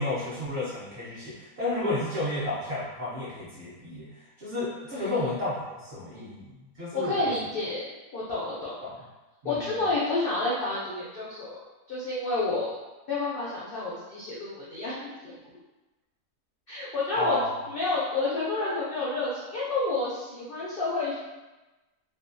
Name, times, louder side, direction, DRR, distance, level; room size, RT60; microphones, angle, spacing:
voice 1, 0.0-4.1 4.4-7.3 8.8-8.9 9.4-9.6 17.2-17.5, left 2 dB, 55° right, -8 dB, 0.7 m, -32 dB
voice 2, 4.9-5.3 6.1-6.3 6.9-8.7 9.4-12.7 13.1-15.4 16.7-17.4 17.7-21.2, left 2 dB, 80° left, -7 dB, 0.5 m, -30 dB
2.6 x 2.2 x 2.5 m, 1.1 s
omnidirectional pair, 1.6 m